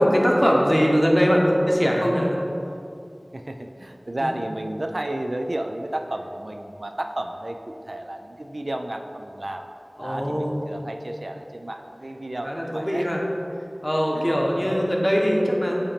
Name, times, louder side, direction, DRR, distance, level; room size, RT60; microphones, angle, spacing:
voice 1, 0.0-2.4 4.2-4.3 10.0-10.6 12.4-13.2 13.8-15.8, equal, 10° left, -2 dB, 1.1 m, -21 dB
voice 2, 3.3-9.7 10.0-13.1 14.1-14.8, right 1 dB, 70° right, 4 dB, 0.3 m, -32 dB
8.5 x 2.9 x 5.0 m, 2.6 s
wide cardioid pair, 40°, 0 cm